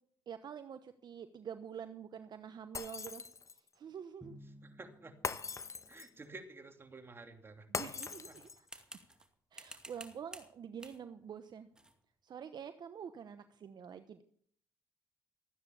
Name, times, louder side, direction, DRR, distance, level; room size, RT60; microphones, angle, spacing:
voice 1, 0.3-3.3 3.5-4.4 7.7-8.8 9.5-11.7 12.2-14.2, right 8 dB, 55° right, 10 dB, 0.9 m, -47 dB
Shatter, 2.7-3.7 5.2-6.2 7.7-8.7, left 5 dB, 35° left, 1.1 m, -41 dB
Drum, 4.2-6.4, equal, 5° left, 2.0 m, -58 dB
voice 2, 4.6-5.1 5.9-7.7, right 3 dB, 25° right, 5 dB, 2.8 m, -51 dB
sound 1, 8.0-9.3 9.5-10.5 10.8-11.0 11.8-12.0, right 1 dB, 10° right, 2.3 m, -52 dB
14.0 x 9.6 x 7.0 m, 0.64 s
cardioid pair, 80°, 9 cm